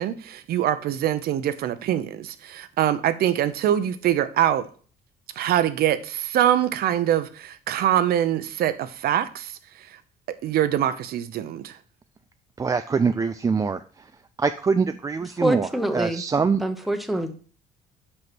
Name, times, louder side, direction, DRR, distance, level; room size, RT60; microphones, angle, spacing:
voice 1, 0.0-4.7 5.4-9.6 10.4-11.8, right 11 dB, 65° right, 0.7 m, -24 dB
voice 2, 12.6-14.1 14.4-16.6, right 5 dB, 20° right, 0.3 m, -24 dB
voice 3, 15.4-16.2 16.6-17.4, right 1 dB, ahead, 0.9 m, -25 dB
5.5 x 5.5 x 6.1 m
cardioid pair, 110°, 17 cm